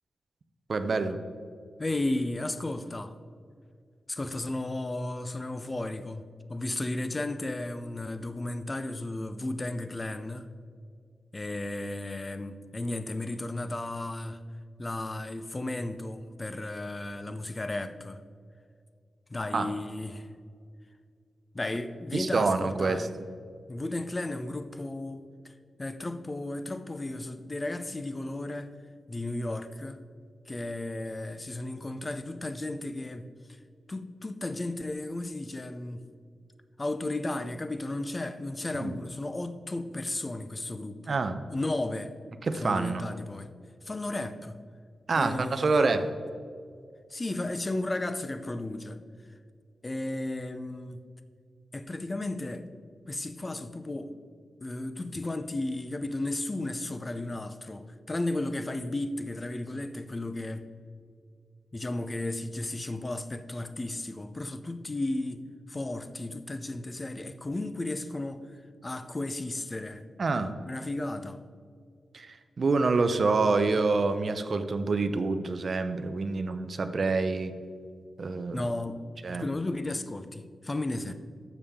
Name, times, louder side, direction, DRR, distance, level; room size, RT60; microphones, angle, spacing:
voice 1, 0.7-1.2 19.5-19.7 22.1-23.1 38.8-39.0 41.1-41.4 42.4-43.0 45.1-46.1 70.2-70.5 72.1-77.5 78.2-78.6 79.2-79.5, right 3 dB, 45° right, 9 dB, 0.6 m, -27 dB
voice 2, 1.8-3.2 4.1-10.5 11.3-14.4 14.8-18.2 19.3-20.3 21.5-23.1 23.7-25.5 25.8-28.7 29.1-30.0 30.5-33.3 33.9-36.0 36.8-41.2 41.5-42.1 42.6-43.5 43.8-44.6 45.2-45.9 47.1-49.0 49.8-51.0 51.7-52.7 53.1-54.1 54.6-60.7 61.7-68.5 68.8-70.0 70.7-71.4 78.5-79.0 79.3-81.1, left 2 dB, 25° left, 10 dB, 0.5 m, -34 dB
12.5 x 7.0 x 3.6 m, 2.1 s
wide cardioid pair, 130°, 0 cm